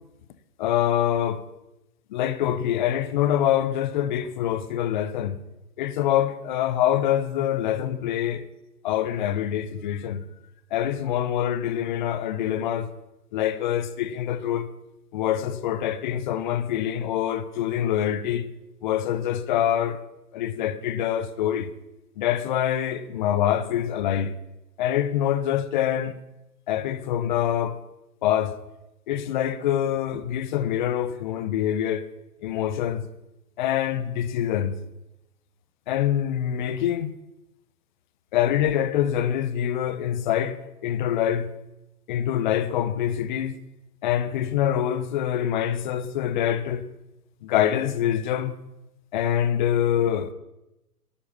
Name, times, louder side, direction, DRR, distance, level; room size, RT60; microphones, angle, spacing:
voice 1, 0.6-1.4 2.1-5.4 5.8-8.4 8.8-10.2 10.7-12.9 13.3-14.7 15.1-18.5 18.8-20.0 20.3-21.7 22.2-24.3 24.8-26.1 26.7-27.8 28.2-28.6 29.1-32.0 32.4-33.0 33.6-34.8 35.9-37.1 38.3-41.5 42.1-43.6 44.0-46.9 47.4-48.5 49.1-50.3, left 10 dB, 30° left, 0.9 m, -25 dB
13.5 x 11.5 x 7.0 m
figure-of-eight pair, 130°, 47 cm